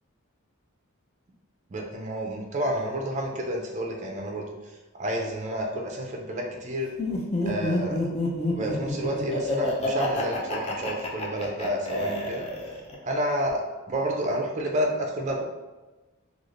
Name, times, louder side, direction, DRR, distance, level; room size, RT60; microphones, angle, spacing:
voice 1, 1.7-4.5 5.0-6.9 7.4-8.1 8.5-12.4 13.0-15.4, equal, 35° right, 1 dB, 0.4 m, -30 dB
Laughter, 7.0-12.9, left 1 dB, 30° left, 0.4 m, -28 dB
3.2 x 2.4 x 2.4 m, 1.2 s
head